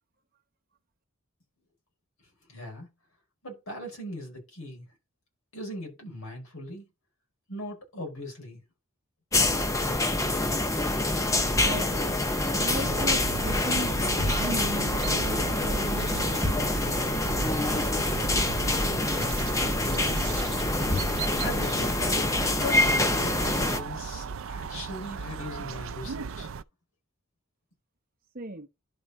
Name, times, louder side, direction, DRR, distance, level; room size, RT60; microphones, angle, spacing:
voice 1, 2.5-2.9 3.4-4.8 5.5-6.8 7.5-8.6 19.8-20.4 21.4-22.0 22.5-26.5, left 1 dB, 85° left, 5.5 m, -39 dB
sound 1, 9.3-23.8, left 2 dB, 15° left, 0.6 m, -26 dB
voice 2, 11.6-12.2 12.6-13.9 14.3-16.8 28.3-28.7, right 2 dB, 40° right, 0.9 m, -36 dB
sound 2, 12.5-26.6, right 5 dB, 65° right, 0.4 m, -36 dB
11.5 x 4.5 x 4.2 m
head